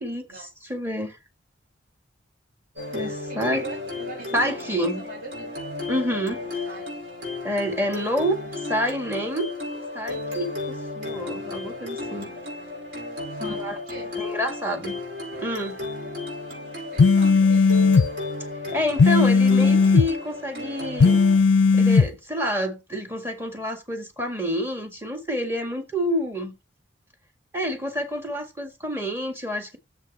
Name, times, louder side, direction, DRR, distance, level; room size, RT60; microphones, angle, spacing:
voice 1, 0.0-1.2 2.9-3.6 4.3-5.0 5.9-6.4 7.4-8.4 8.7-9.5 9.9-12.3 13.4-13.8 14.2-15.0 15.4-15.8 18.7-21.2 21.7-26.5 27.5-29.8, equal, 10° right, 1.7 m, -28 dB
sound 1, 2.8-21.4, left 2 dB, 65° right, 4.9 m, -33 dB
voice 2, 3.0-5.5 6.6-6.8 8.4-8.5 8.8-8.9 13.3-14.1 16.9-17.9, right 4 dB, 50° right, 4.1 m, -42 dB
sound 2, 17.0-18.1 19.0-20.1 21.0-22.1, left 4 dB, 70° left, 0.4 m, -16 dB
7.4 x 6.1 x 4.2 m
head